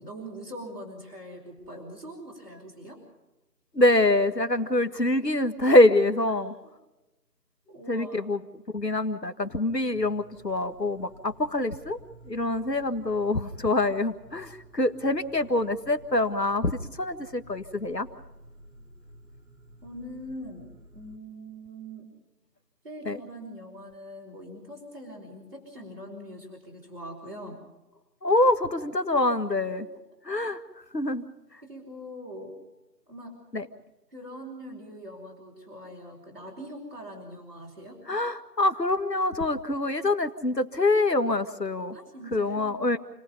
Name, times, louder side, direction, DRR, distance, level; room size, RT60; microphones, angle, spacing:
voice 1, 0.0-3.0 6.2-6.3 6.6-6.7 7.7-8.3 19.8-22.1 22.8-27.7 29.6-29.7 31.6-32.6 33.1-33.4 34.1-38.0 41.9-42.8, equal, 35° right, -5 dB, 4.9 m, -42 dB
voice 2, 3.7-6.5 7.9-8.4 8.7-12.0 12.3-18.1 23.1-23.2 28.2-29.9 30.3-30.6 30.9-31.2 33.5-33.7 38.1-42.0 42.3-43.0, left 2 dB, 75° left, 10 dB, 1.9 m, -25 dB
sound 1, 9.9-21.2, right 1 dB, 50° right, 5.6 m, -52 dB
29.5 x 19.0 x 5.4 m, 1.0 s
figure-of-eight pair, 180°, 50 cm